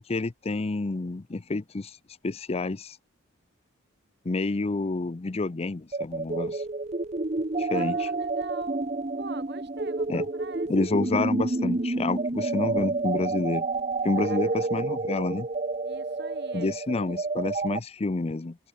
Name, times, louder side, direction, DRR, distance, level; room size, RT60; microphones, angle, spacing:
voice 1, 0.0-2.0 2.2-3.0 4.2-6.6 7.6-8.1 10.1-10.2 10.7-13.7 14.0-15.5 16.5-18.6, left 3 dB, 30° left, 0.5 m, -29 dB
jsyd melody reverb, 5.9-17.8, right 3 dB, 35° right, 1.2 m, -29 dB
voice 2, 7.7-8.8 9.2-11.0 14.2-14.5 15.8-16.8 17.1-17.2, right 3 dB, 55° right, 7.2 m, -43 dB
head